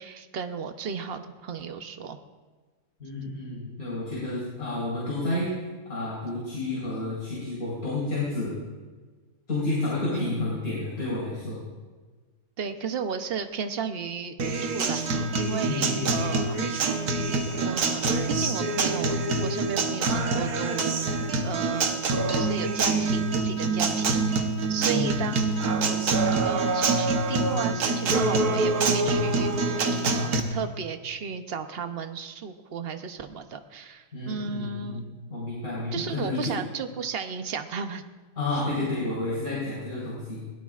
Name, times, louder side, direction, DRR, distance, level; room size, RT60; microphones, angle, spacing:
voice 1, 0.0-2.2 10.1-10.4 12.6-16.6 17.6-22.0 22.3-25.6 26.4-35.0 35.9-38.0, right 6 dB, 45° right, 8 dB, 1.0 m, -34 dB
voice 2, 3.0-5.5 5.9-8.6 9.5-11.6 15.7-16.2 24.8-25.4 34.1-36.5 38.4-40.4, left 2 dB, 70° left, -8 dB, 4.8 m, -30 dB
Acoustic guitar, 14.4-30.4, right 3 dB, 85° right, 1.6 m, -25 dB
22.0 x 17.0 x 2.5 m, 1.4 s
omnidirectional pair, 1.5 m